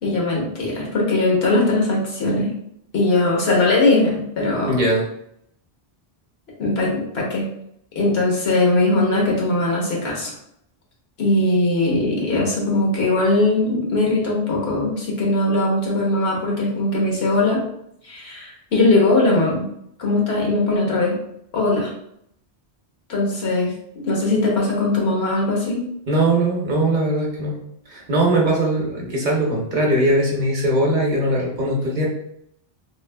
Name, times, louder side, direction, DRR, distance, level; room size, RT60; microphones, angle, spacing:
voice 1, 0.0-2.5 2.9-4.8 6.6-7.4 7.9-10.3 11.2-17.6 18.0-19.7 20.0-21.2 21.5-21.9 23.1-25.8, left 2 dB, 80° left, -2 dB, 1.2 m, -20 dB
voice 2, 4.7-5.0 26.1-27.6 27.9-32.1, right 1 dB, 50° right, -1 dB, 0.8 m, -20 dB
3.3 x 3.0 x 2.2 m, 0.73 s
omnidirectional pair, 1.0 m